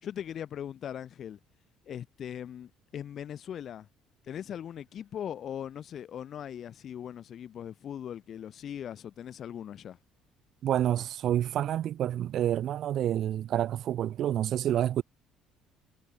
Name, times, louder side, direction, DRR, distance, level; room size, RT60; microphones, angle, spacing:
voice 1, 0.0-1.4 1.9-3.9 4.2-10.0, left 9 dB, 40° left, 4.4 m, -40 dB
voice 2, 10.6-15.0, right 11 dB, 45° right, 4.4 m, -28 dB
cardioid pair, 165°, 0 cm